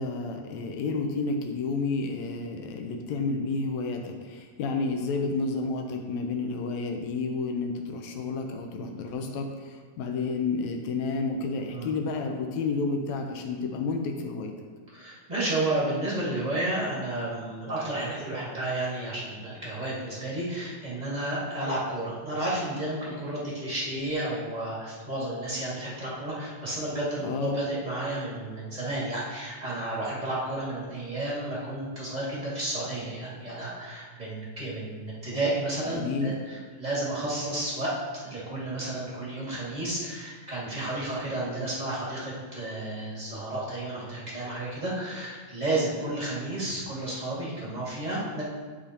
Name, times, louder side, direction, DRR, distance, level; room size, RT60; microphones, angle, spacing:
voice 1, 0.0-14.5 27.2-27.6 35.9-36.4, left 3 dB, 75° left, 3 dB, 1.8 m, -30 dB
voice 2, 14.9-38.0 38.2-48.4, right 1 dB, 25° right, -7 dB, 1.0 m, -32 dB
12.0 x 5.0 x 2.8 m, 1.5 s
omnidirectional pair, 3.6 m